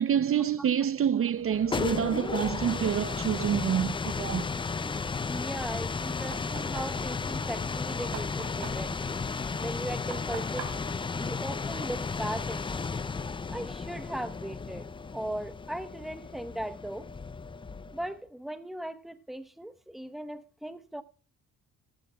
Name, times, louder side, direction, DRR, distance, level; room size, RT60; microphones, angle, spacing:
voice 1, 0.0-4.5, right 9 dB, 40° right, 0.6 m, -27 dB
sound 1, 1.4-18.1, left 4 dB, 15° left, 0.4 m, -34 dB
Tools, 2.9-3.7 4.1-4.2 6.0-7.0 9.0-9.8 12.0-12.9, left 4 dB, 55° left, 4.8 m, -57 dB
voice 2, 4.8-9.0 9.6-12.9 13.5-17.1 17.9-21.0, right 1 dB, ahead, 1.0 m, -38 dB
Knock, 6.3-12.2, right 8 dB, 90° right, 3.6 m, -45 dB
15.0 x 12.5 x 2.3 m
cardioid pair, 95°, 33 cm